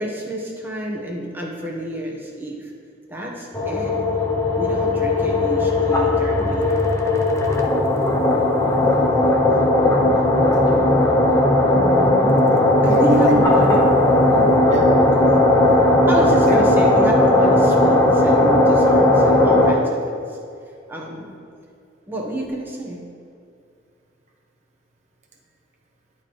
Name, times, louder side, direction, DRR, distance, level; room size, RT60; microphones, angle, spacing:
voice 1, 0.0-2.7 3.1-4.0 4.6-6.9 7.9-8.1 9.5-9.7 10.1-10.4 11.7-12.4 12.8-13.8 14.3-14.5 15.2-15.4 16.1-20.4 20.9-21.3 22.1-23.0, right 1 dB, 10° right, -2 dB, 1.0 m, -29 dB
sound 1, 3.5-19.7, left 1 dB, 15° left, 0.6 m, -17 dB
voice 2, 8.5-9.3 10.0-10.2 10.5-11.0 12.8-13.5 14.3-15.0 16.2-16.6, right 1 dB, 40° right, -1 dB, 1.0 m, -27 dB
11.0 x 4.4 x 3.1 m, 2.4 s
head